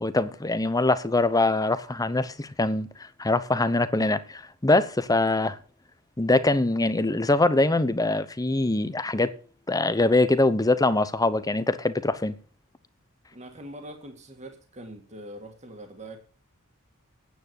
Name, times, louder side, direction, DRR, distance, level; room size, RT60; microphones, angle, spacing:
voice 1, 0.0-2.9 3.2-5.6 6.2-9.3 9.7-12.3, left 2 dB, 15° left, 0.8 m, -23 dB
voice 2, 13.3-16.2, right 1 dB, 30° right, 2.0 m, -43 dB
9.5 x 8.9 x 8.3 m
head